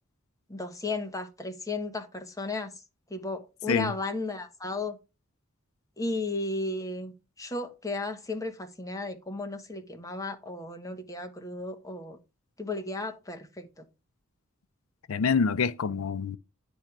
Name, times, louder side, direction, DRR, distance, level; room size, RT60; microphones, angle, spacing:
voice 1, 0.5-2.7 3.1-5.0 6.0-7.1 7.4-12.2 12.6-13.8, left 2 dB, 15° left, 1.2 m, -34 dB
voice 2, 15.1-16.4, left 5 dB, 85° left, 0.5 m, -26 dB
10.0 x 3.4 x 5.8 m
head